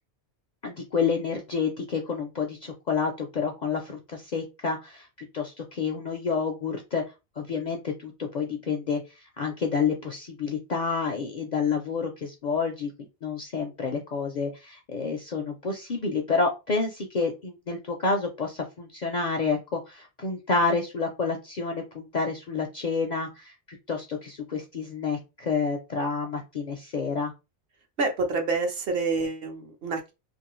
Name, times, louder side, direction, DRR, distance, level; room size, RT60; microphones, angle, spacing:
voice 1, 0.6-5.1 5.3-7.0 7.4-12.9 13.2-27.3, left 5 dB, 55° left, 3 dB, 0.5 m, -29 dB
voice 2, 28.0-30.1, right 3 dB, 60° right, 4 dB, 0.8 m, -27 dB
2.6 x 2.6 x 3.0 m, 0.26 s
omnidirectional pair, 1.2 m